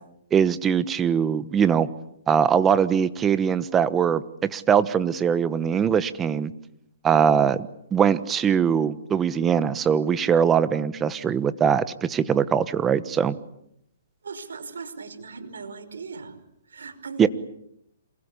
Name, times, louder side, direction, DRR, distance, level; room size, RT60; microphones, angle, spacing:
voice 1, 0.3-1.9 2.3-6.5 7.0-13.4 17.2-17.3, right 7 dB, 15° right, 14 dB, 1.1 m, -21 dB
voice 2, 14.2-16.4 16.7-17.3, right 4 dB, 90° right, 7 dB, 5.5 m, -38 dB
28.0 x 22.0 x 8.4 m, 0.77 s
hypercardioid pair, 150°, 0 cm